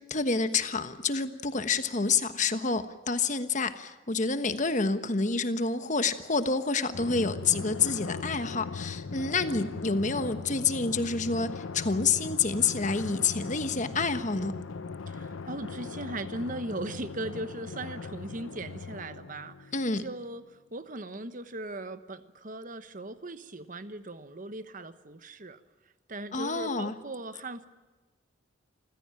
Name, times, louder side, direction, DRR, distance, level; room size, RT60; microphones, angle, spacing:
voice 1, 0.0-14.6 19.7-20.0 26.3-26.9, left 4 dB, 40° left, 10 dB, 1.2 m, -28 dB
Drum, 6.9-20.0, left 4 dB, 85° left, 0.7 m, -39 dB
voice 2, 15.1-19.7 20.0-25.6 26.1-27.7, right 2 dB, 40° right, 11 dB, 1.1 m, -38 dB
27.0 x 15.5 x 8.9 m, 1.2 s
head